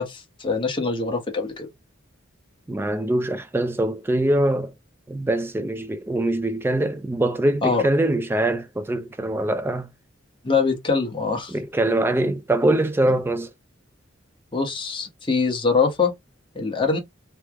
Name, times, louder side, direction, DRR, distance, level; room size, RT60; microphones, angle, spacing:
voice 1, 0.0-1.7 7.6-7.8 10.4-11.5 14.5-16.1 16.5-17.0, left 4 dB, 25° left, 0.9 m, -23 dB
voice 2, 2.7-4.7 5.1-9.9 11.5-13.5, right 1 dB, 10° right, 0.3 m, -23 dB
3.2 x 2.0 x 3.4 m
head